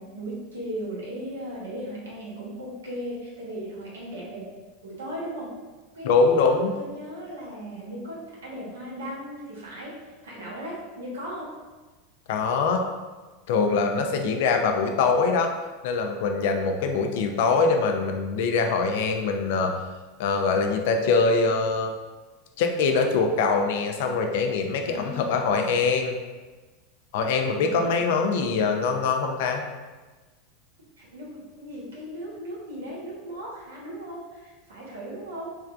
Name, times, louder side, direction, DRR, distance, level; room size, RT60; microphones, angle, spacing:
voice 1, 0.0-4.5 4.8-5.5 5.9-9.9 10.2-11.6 13.6-14.6 24.8-25.5 27.5-28.5 31.0-35.6, right 1 dB, 85° right, -6 dB, 1.1 m, -37 dB
voice 2, 6.0-6.7 12.3-12.9 13.5-15.5 15.8-19.8 20.2-21.9 22.6-26.2 27.1-29.6, left 4 dB, 65° left, 4 dB, 0.4 m, -23 dB
3.4 x 3.2 x 2.4 m, 1.3 s
hypercardioid pair, 90°, 0 cm